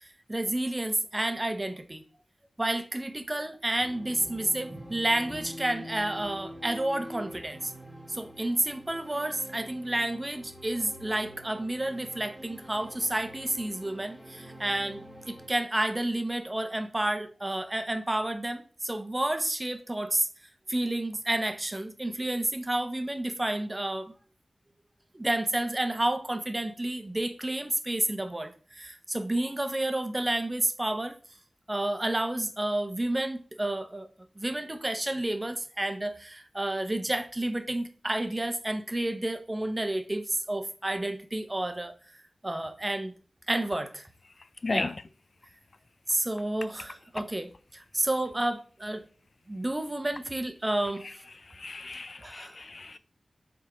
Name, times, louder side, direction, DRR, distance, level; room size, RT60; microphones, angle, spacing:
voice 1, 0.0-2.0 2.6-7.7 8.1-20.3 20.7-24.1 25.1-31.1 31.7-34.1 34.4-41.9 42.4-43.1 43.5-44.1 44.7-44.9 46.1-49.0 49.5-51.1 52.2-52.6, right 1 dB, 20° right, 0.9 m, -30 dB
sound 1, 3.8-15.5, equal, 5° right, 1.8 m, -46 dB
voice 2, 51.6-53.0, left 3 dB, 50° left, 0.3 m, -34 dB
7.4 x 3.6 x 5.1 m
wide cardioid pair, 105°, 0 cm